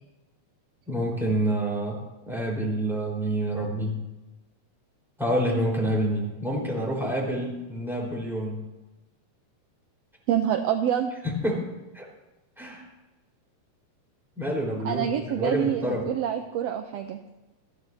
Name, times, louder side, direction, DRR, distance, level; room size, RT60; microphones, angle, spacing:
voice 1, 0.9-2.0 2.3-4.0 5.2-8.6 11.2-11.7 11.9-12.0 12.6-12.9 14.4-15.1 15.4-16.1, right 1 dB, ahead, -3 dB, 3.9 m, -27 dB
voice 2, 10.3-11.1 14.8-17.2, right 9 dB, 75° right, 6 dB, 1.6 m, -26 dB
20.0 x 14.5 x 2.8 m, 1.0 s
omnidirectional pair, 3.4 m